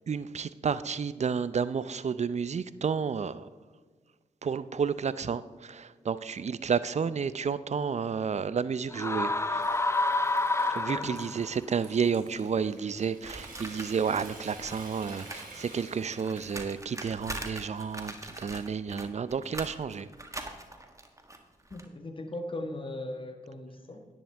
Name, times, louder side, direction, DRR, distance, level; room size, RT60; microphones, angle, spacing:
voice 1, 0.1-3.5 4.4-9.6 10.7-20.1, right 6 dB, 45° right, 16 dB, 0.5 m, -31 dB
sound 1, 8.9-11.5, left 2 dB, 15° left, 0.6 m, -28 dB
Water tap faucet / Sink (filling or washing) / Trickle dribble, 9.1-19.1, right 2 dB, 60° right, 3.3 m, -51 dB
voice 2, 10.9-11.4 21.7-24.1, left 1 dB, 35° left, 5 dB, 1.5 m, -39 dB
sound 2, 13.2-15.5 15.7-21.8, right 1 dB, 20° right, 1.5 m, -43 dB
10.0 x 10.0 x 3.5 m, 1.5 s
supercardioid pair, 40°, 16 cm